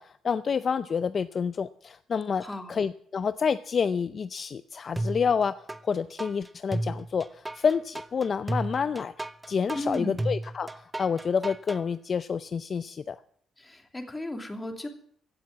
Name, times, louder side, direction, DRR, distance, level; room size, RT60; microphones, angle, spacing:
voice 1, 0.0-9.1 9.5-13.2, left 6 dB, 45° left, 13 dB, 0.5 m, -28 dB
voice 2, 2.4-2.7 9.7-10.2 13.6-14.9, left 1 dB, 15° left, 5 dB, 2.6 m, -35 dB
sound 1, 5.0-5.8 6.2-11.8, right 1 dB, 15° right, 0.8 m, -33 dB
16.0 x 7.6 x 9.4 m, 0.64 s
cardioid pair, 90°, 0 cm